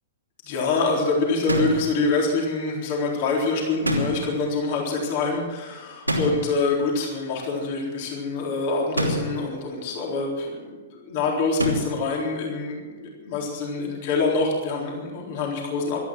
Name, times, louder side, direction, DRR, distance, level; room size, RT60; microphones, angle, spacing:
voice 1, 0.4-16.0, left 3 dB, 45° left, -1 dB, 3.9 m, -25 dB
sound 1, 1.5-2.0 3.8-4.4 6.1-6.6 9.0-9.5 11.6-12.1, equal, 85° right, 3.0 m, -26 dB
17.5 x 12.5 x 6.3 m, 1.3 s
figure-of-eight pair, 105°, 0 cm